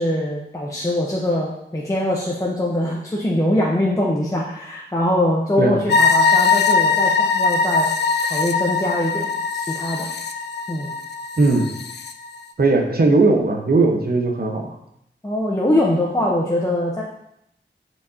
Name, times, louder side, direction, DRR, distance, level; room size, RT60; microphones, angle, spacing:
voice 1, 0.0-7.9 8.2-10.1 10.7-10.9 15.2-17.0, left 1 dB, 15° left, -4 dB, 0.9 m, -22 dB
sound 1, 5.9-12.1, left 4 dB, 60° left, 0.5 m, -20 dB
voice 2, 11.4-11.7 12.6-14.7, right 3 dB, 50° right, 2 dB, 1.0 m, -18 dB
9.3 x 4.7 x 2.8 m, 0.77 s
wide cardioid pair, 100°, 20 cm